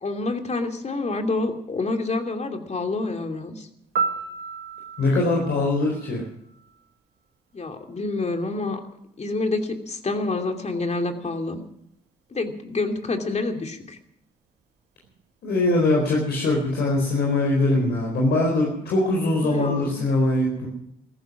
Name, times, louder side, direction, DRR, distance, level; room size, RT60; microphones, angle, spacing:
voice 1, 0.0-3.7 7.5-8.8 9.2-11.6 12.3-14.0 19.2-20.0, left 3 dB, 40° left, 5 dB, 2.9 m, -28 dB
Piano, 3.9-6.9 15.0-15.2, right 5 dB, 70° right, 1.9 m, -32 dB
voice 2, 5.0-6.2 15.4-20.7, left 2 dB, 70° left, -1 dB, 4.3 m, -22 dB
15.0 x 14.5 x 6.1 m, 0.77 s
supercardioid pair, 50°, 18 cm